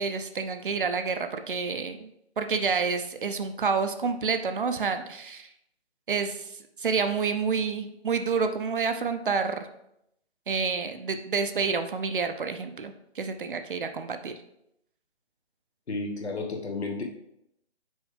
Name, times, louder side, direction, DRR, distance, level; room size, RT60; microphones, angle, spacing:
voice 1, 0.0-2.1 2.4-5.5 6.1-9.7 10.5-14.4, right 5 dB, 50° right, 8 dB, 0.6 m, -29 dB
voice 2, 15.9-17.0, left 3 dB, 70° left, 1 dB, 1.4 m, -32 dB
6.2 x 4.6 x 3.3 m, 0.79 s
figure-of-eight pair, 160°, 33 cm